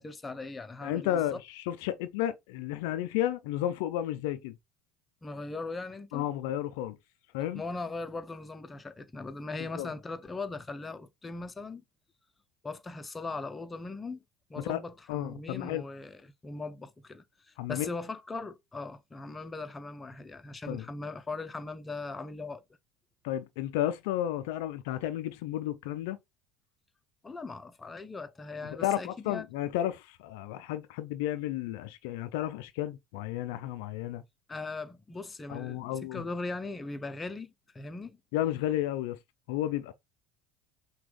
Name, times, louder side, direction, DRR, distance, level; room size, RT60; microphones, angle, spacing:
voice 1, 0.0-1.4 5.2-6.3 7.5-11.8 12.6-14.2 14.5-22.6 27.2-29.5 34.5-38.2, left 3 dB, 20° left, 0.6 m, -39 dB
voice 2, 0.8-4.5 6.1-7.0 7.3-7.6 9.8-9.9 14.6-14.8 15.1-15.8 17.6-17.9 20.7-20.8 23.2-26.2 28.8-34.2 35.5-36.2 38.3-39.2 39.5-39.9, left 12 dB, 70° left, 0.4 m, -32 dB
5.9 x 2.3 x 3.3 m
hypercardioid pair, 70°, 0 cm